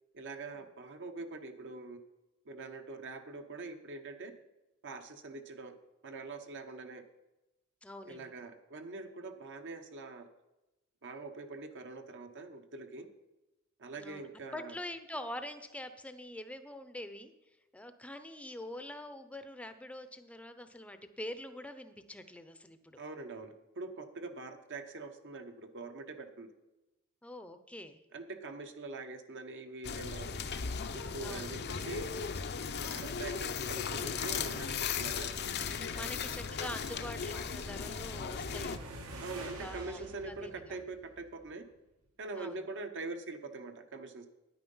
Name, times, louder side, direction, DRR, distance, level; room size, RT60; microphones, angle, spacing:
voice 1, 0.1-2.0 2.4-4.3 4.8-5.8 6.0-7.0 8.0-10.3 11.0-13.1 13.8-14.8 23.0-26.5 28.1-30.3 30.9-32.1 32.8-35.3 35.9-36.1 39.2-41.6 42.2-44.3, right 3 dB, 55° right, 6 dB, 1.0 m, -44 dB
voice 2, 7.8-8.4 14.0-17.3 17.7-23.0 27.2-28.0 31.2-31.5 35.7-38.9 39.3-40.8 42.3-42.6, left 1 dB, 5° left, 9 dB, 0.7 m, -45 dB
sound 1, 29.8-38.8, left 6 dB, 50° left, 0.6 m, -37 dB
sound 2, 36.8-41.6, right 1 dB, 80° right, 1.7 m, -49 dB
9.8 x 9.2 x 5.5 m, 0.99 s
head